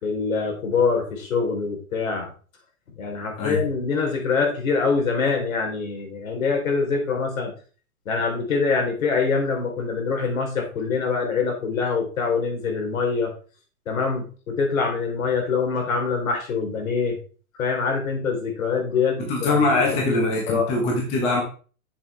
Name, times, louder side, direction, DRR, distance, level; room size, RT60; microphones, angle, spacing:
voice 1, 0.0-2.3 3.0-7.5 8.1-13.3 13.9-17.2 17.6-20.1 20.5-20.7, left 5 dB, 65° left, 2 dB, 3.7 m, -24 dB
voice 2, 19.2-21.4, left 2 dB, 15° left, -1 dB, 1.3 m, -22 dB
8.5 x 7.0 x 3.4 m, 0.38 s
hypercardioid pair, 170°, 44 cm